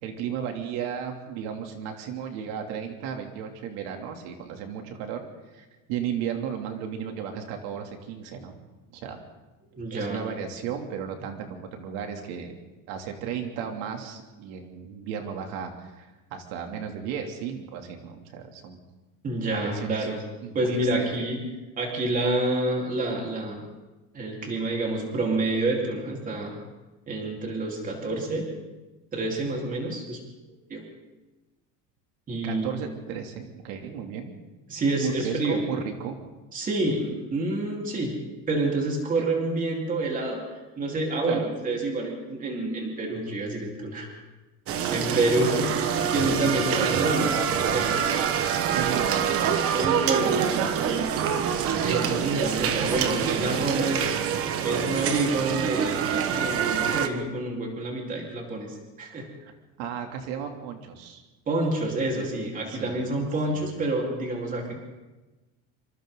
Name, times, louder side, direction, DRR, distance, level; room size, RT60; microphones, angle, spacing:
voice 1, 0.0-5.3 5.5-8.5 8.9-9.2 9.9-12.5 12.9-18.8 19.4-20.1 20.4-21.1 32.4-34.3 35.0-36.2 39.2-39.3 41.2-41.5 48.7-49.6 59.4-59.5 59.8-61.2 62.7-63.0 63.5-63.6, right 8 dB, 80° right, 3 dB, 3.0 m, -34 dB
voice 2, 9.7-10.2 19.2-20.2 20.5-21.4 21.8-23.6 24.1-26.5 27.1-28.5 29.1-30.2 30.7-30.8 32.3-32.7 34.7-35.6 36.5-38.1 38.5-40.4 40.8-44.1 44.9-47.4 47.7-48.0 49.7-51.2 51.8-54.2 54.6-59.3 61.5-64.7, right 2 dB, 20° right, -1 dB, 4.1 m, -28 dB
sound 1, 44.7-57.1, right 8 dB, 40° right, 1.4 m, -25 dB
27.0 x 25.5 x 4.0 m, 1.2 s
cardioid pair, 180°, 36 cm